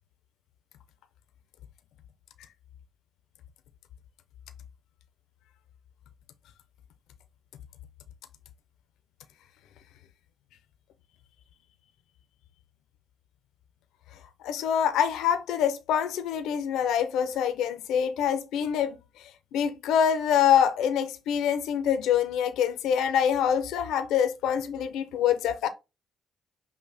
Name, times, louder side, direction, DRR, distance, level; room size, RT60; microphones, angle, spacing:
voice 1, 14.4-19.0 19.5-25.7, left 8 dB, 90° left, 0.5 m, -25 dB
5.8 x 2.1 x 3.3 m
cardioid pair, 90°, 0 cm